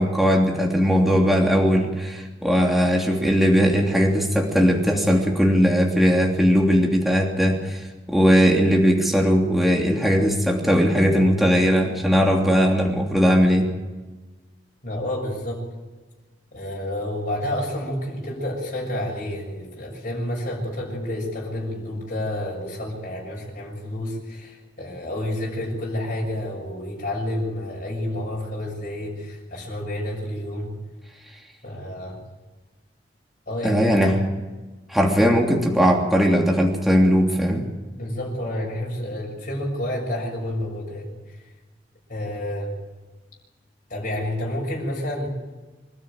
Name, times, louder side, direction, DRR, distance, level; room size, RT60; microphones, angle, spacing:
voice 1, 0.0-13.7 33.6-34.2 34.9-37.7, equal, ahead, 0 dB, 3.0 m, -19 dB
voice 2, 14.8-15.6 16.5-30.8 31.6-32.2 33.5-34.0 37.9-41.4 42.1-42.7 43.9-45.3, left 1 dB, 50° left, -3 dB, 6.5 m, -29 dB
25.5 x 13.0 x 9.0 m, 1.2 s
head